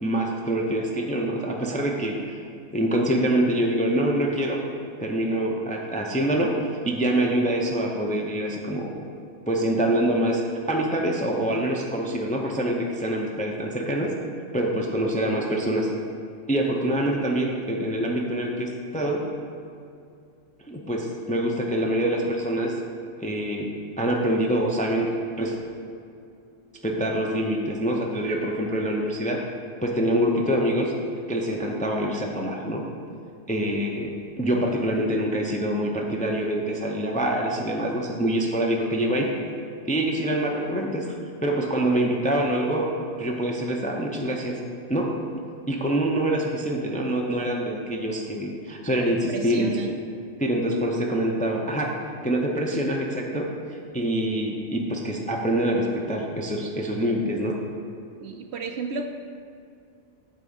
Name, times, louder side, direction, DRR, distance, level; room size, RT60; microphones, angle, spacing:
voice 1, 0.0-2.4 2.7-4.6 5.0-6.5 6.8-8.9 9.5-10.4 10.7-14.1 14.5-15.9 16.5-19.2 20.7-22.7 23.2-23.7 24.0-25.1 25.4-25.6 26.8-29.4 29.8-30.9 31.3-32.8 33.5-39.3 39.9-41.1 41.4-42.9 43.2-44.6 44.9-45.1 45.7-49.7 50.4-51.9 52.2-53.5 53.9-57.6, right 1 dB, 10° left, -1 dB, 0.4 m, -25 dB
voice 2, 49.3-50.0 58.2-59.1, right 5 dB, 65° right, 5 dB, 0.7 m, -32 dB
9.0 x 3.6 x 7.0 m, 2.4 s
omnidirectional pair, 1.3 m